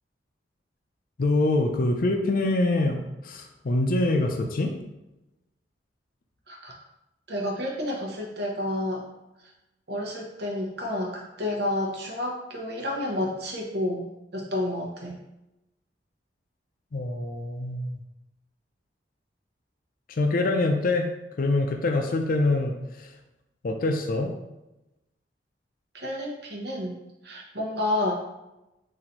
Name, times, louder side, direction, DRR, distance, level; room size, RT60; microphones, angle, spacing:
voice 1, 1.2-4.7 16.9-18.0 20.1-21.1 21.4-23.1 23.6-24.3, left 2 dB, 55° left, 4 dB, 0.5 m, -25 dB
voice 2, 7.3-9.0 9.9-14.1 14.3-15.2 25.9-27.0 27.2-28.2, left 1 dB, 65° right, -1 dB, 1.0 m, -30 dB
4.1 x 2.7 x 4.3 m, 0.95 s
head